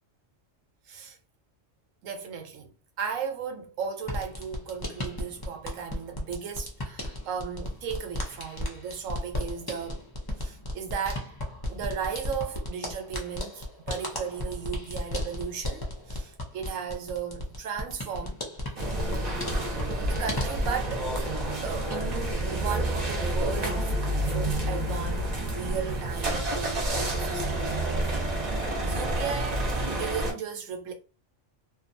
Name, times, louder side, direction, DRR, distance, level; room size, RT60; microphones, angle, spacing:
voice 1, 2.0-10.0 10.4-11.3 11.7-18.4 20.1-21.1 21.6-23.9 24.2-27.6 28.8-30.9, right 7 dB, 85° right, 1.0 m, -36 dB
sound 1, 4.0-21.5 21.8-22.5, left 1 dB, 30° left, 0.5 m, -35 dB
sound 2, 18.8-30.3, right 1 dB, 40° right, 0.7 m, -29 dB
2.6 x 2.3 x 2.5 m
omnidirectional pair, 1.3 m